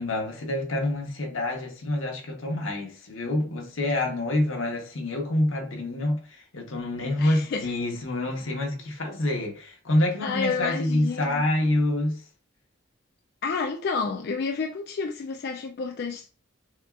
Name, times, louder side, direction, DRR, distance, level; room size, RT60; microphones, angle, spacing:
voice 1, 0.0-12.2, left 1 dB, 85° left, 1.1 m, -27 dB
voice 2, 7.2-7.7 10.2-11.4 13.4-16.3, left 4 dB, 50° left, 0.3 m, -30 dB
6.2 x 2.4 x 2.4 m
head